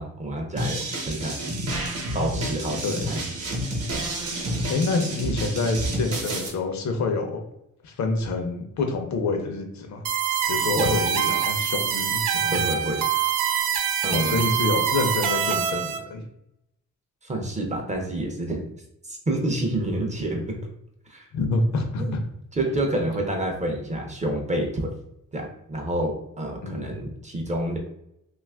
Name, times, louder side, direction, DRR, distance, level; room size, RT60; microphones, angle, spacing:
voice 1, 0.0-1.5 2.1-2.8 3.1-3.2 10.8-10.9 12.5-13.0 14.0-14.4 17.2-18.7 19.0-20.4 21.1-21.3 22.0-22.2 22.5-24.9 25.3-27.8, right 1 dB, 25° right, 1 dB, 0.4 m, -28 dB
sound 1, 0.6-6.5, right 1 dB, 50° right, 0.8 m, -29 dB
voice 2, 4.7-7.4 7.8-10.0 10.5-12.6 14.1-16.2 21.3-22.2 26.6-27.0, left 3 dB, 65° left, 5 dB, 0.6 m, -27 dB
sound 2, 10.0-16.0, right 8 dB, 80° right, 0.5 m, -25 dB
2.8 x 2.3 x 3.3 m, 0.79 s
wide cardioid pair, 170°, 31 cm